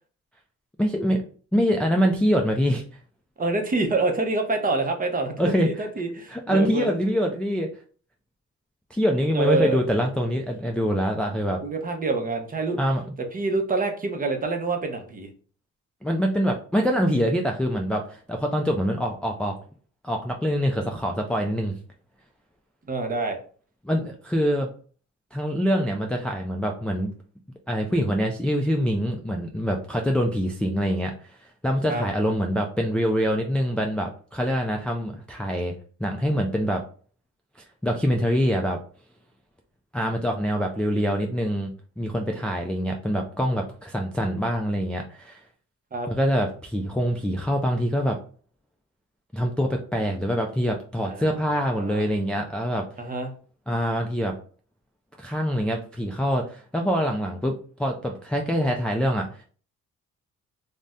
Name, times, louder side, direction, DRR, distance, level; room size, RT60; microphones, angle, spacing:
voice 1, 0.8-1.2 1.5-2.8 5.4-5.9 6.3-7.7 8.9-11.6 12.8-13.0 16.0-19.5 20.0-21.8 23.8-24.7 25.3-27.1 27.7-31.4 31.6-36.8 37.8-38.8 39.9-45.4 46.1-48.2 49.3-52.9 53.7-54.4 55.2-57.5 57.8-59.4, equal, 5° left, 1 dB, 0.3 m, -25 dB
voice 2, 3.4-6.9 9.3-9.8 11.6-12.8 13.3-15.3 22.9-23.4 31.9-32.0 45.9-46.1 51.0-52.0 53.0-53.3, right 3 dB, 30° right, 4 dB, 0.7 m, -27 dB
2.5 x 2.1 x 3.4 m, 0.42 s
cardioid pair, 90°, 30 cm